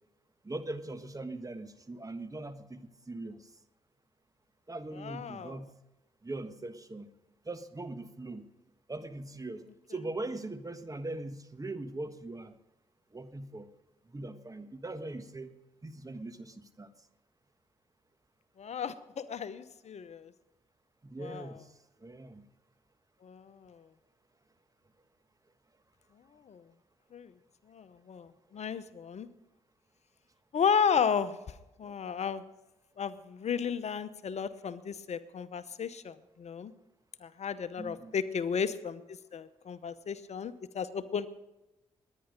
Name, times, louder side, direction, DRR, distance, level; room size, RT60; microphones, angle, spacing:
voice 1, 0.4-3.5 4.7-5.7 6.2-7.1 7.4-8.4 8.9-9.6 9.9-12.5 13.1-13.7 14.1-15.5 15.8-16.9 21.0-22.4 37.8-38.1, right 2 dB, 25° right, 9 dB, 1.4 m, -41 dB
voice 2, 5.0-5.6 18.6-20.3 21.2-21.5 23.2-23.8 26.5-26.6 27.1-27.3 27.7-29.3 30.5-31.4 31.8-32.4 33.0-36.7 37.2-41.3, left 6 dB, 60° left, 14 dB, 0.8 m, -33 dB
20.5 x 9.9 x 5.2 m, 0.98 s
supercardioid pair, 45°, 13 cm